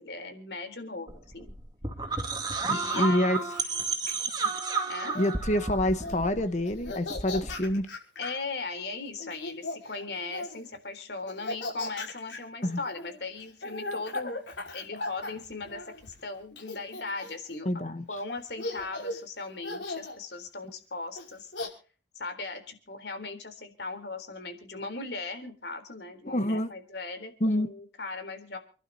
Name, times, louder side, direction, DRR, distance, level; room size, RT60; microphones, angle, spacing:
voice 1, 0.0-1.5 2.7-3.3 4.9-5.2 8.2-14.4 14.7-21.5 22.2-28.6, left 3 dB, 70° left, 3.8 m, -38 dB
sound 1, 1.1-7.8, right 4 dB, 20° right, 2.2 m, -32 dB
voice 2, 2.6-3.4 5.1-7.9 12.6-12.8 17.6-18.0 26.3-26.7 27.4-27.7, left 1 dB, 40° left, 1.2 m, -27 dB
Laughter, 2.9-5.3 5.9-6.3 6.6-8.4 9.2-10.7 11.3-16.1 16.6-17.5 18.2-18.3 18.6-19.2 19.6-20.2 21.2-21.7, left 2 dB, 90° left, 5.5 m, -38 dB
28.5 x 12.0 x 2.9 m
head